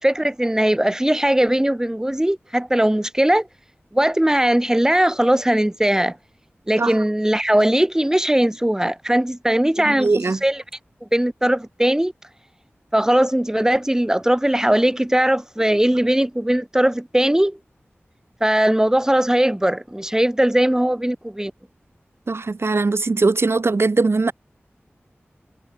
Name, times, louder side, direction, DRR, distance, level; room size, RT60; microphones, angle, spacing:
voice 1, 0.0-3.5 3.9-6.2 6.7-10.6 11.0-12.1 12.9-17.6 18.4-21.5, right 1 dB, 15° right, 5.7 m, -19 dB
voice 2, 9.9-10.4 22.3-24.3, right 3 dB, 70° right, 2.6 m, -20 dB
wide cardioid pair, 75°, 4 cm